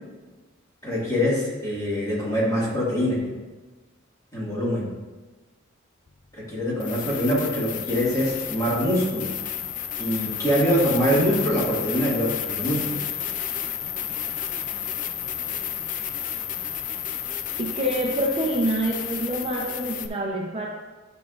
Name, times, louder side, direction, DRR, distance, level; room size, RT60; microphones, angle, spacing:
voice 1, 0.8-3.2 4.3-4.9 6.4-9.3 10.0-13.0, equal, 15° left, -7 dB, 2.0 m, -24 dB
sound 1, 6.1-6.2 6.8-20.1, left 9 dB, 40° left, 0.4 m, -31 dB
voice 2, 17.6-20.7, right 1 dB, 30° right, -2 dB, 0.7 m, -26 dB
9.6 x 5.8 x 2.5 m, 1.2 s
head